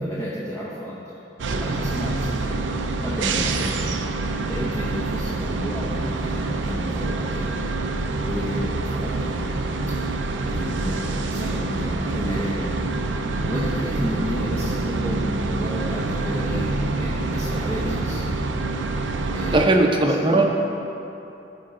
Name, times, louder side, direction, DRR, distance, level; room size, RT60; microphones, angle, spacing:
voice 1, 0.0-0.9 1.6-2.7 3.0-3.7 4.5-7.5 8.2-9.5 10.4-12.8 13.4-18.2 19.3-19.7 20.0-20.5, equal, 20° left, -7 dB, 1.1 m, -32 dB
sound 1, 1.4-19.7, right 3 dB, 85° right, 0.6 m, -26 dB
voice 2, 19.5-20.5, right 2 dB, 25° right, 2 dB, 0.8 m, -18 dB
14.5 x 5.2 x 3.8 m, 2.9 s
head